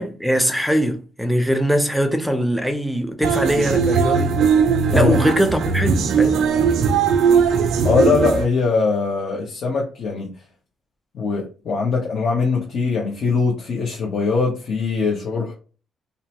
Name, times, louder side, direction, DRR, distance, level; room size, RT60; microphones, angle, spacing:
voice 1, 0.0-4.3 4.9-6.5, equal, ahead, 0.5 m, -21 dB
sound 1, 3.2-8.5, right 6 dB, 75° right, 0.4 m, -19 dB
voice 2, 7.8-10.3 11.1-15.5, left 4 dB, 60° left, 0.8 m, -21 dB
2.7 x 2.1 x 2.9 m
cardioid pair, 90°, 0 cm